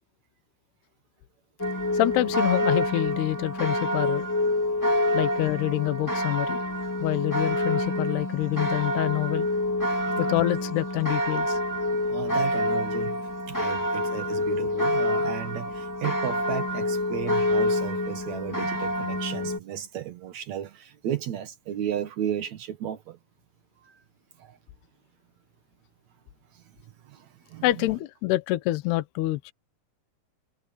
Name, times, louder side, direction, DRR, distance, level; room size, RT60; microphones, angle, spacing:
sound 1, 1.6-19.6, left 1 dB, 10° left, 1.0 m, -27 dB
voice 1, 1.9-4.3 5.1-6.6 7.0-9.5 10.2-11.6 27.6-29.5, left 17 dB, 75° left, 2.8 m, -26 dB
voice 2, 11.9-23.2 23.8-24.0 24.4-24.6 26.5-26.6 27.0-27.6, right 10 dB, 70° right, 1.7 m, -34 dB
omnidirectional pair, 5.1 m